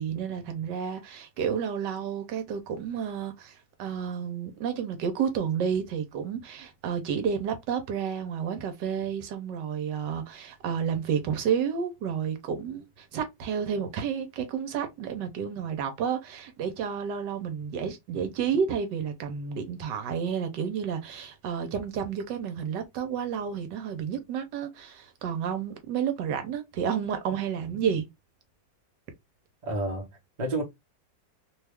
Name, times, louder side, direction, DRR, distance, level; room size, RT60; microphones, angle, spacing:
voice 1, 0.0-28.1, right 7 dB, 80° right, 1.3 m, -31 dB
voice 2, 29.6-30.6, right 1 dB, 35° right, 0.7 m, -30 dB
2.9 x 2.3 x 3.3 m
omnidirectional pair, 2.0 m